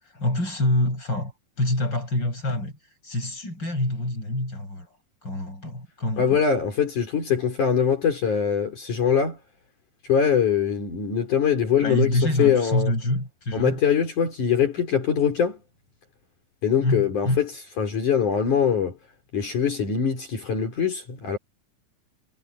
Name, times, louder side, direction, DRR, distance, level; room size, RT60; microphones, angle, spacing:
voice 1, 0.1-1.3 1.6-2.8 3.0-4.9 5.2-6.4 11.8-13.8 16.8-17.4, left 1 dB, 30° left, 8.8 m, -26 dB
voice 2, 6.2-9.4 10.1-12.9 13.5-15.6 16.6-17.5 17.8-19.0 19.3-21.4, left 7 dB, 60° left, 5.6 m, -23 dB
omnidirectional pair, 4.1 m